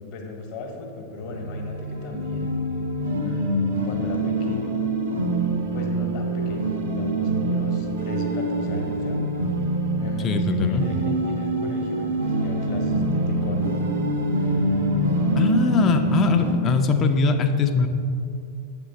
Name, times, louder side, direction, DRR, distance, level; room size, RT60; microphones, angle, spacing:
voice 1, 0.0-2.5 3.2-4.8 5.7-9.2 10.0-13.7, left 3 dB, 45° left, 3 dB, 1.0 m, -36 dB
sound 1, 1.2-16.5, right 2 dB, 60° right, 0.9 m, -25 dB
sound 2, 2.1-9.2, left 2 dB, 85° right, 0.4 m, -35 dB
voice 2, 10.2-10.8 15.4-17.9, left 5 dB, 30° left, 6 dB, 0.5 m, -21 dB
8.0 x 3.7 x 6.2 m, 2.6 s
figure-of-eight pair, 90°, 0 cm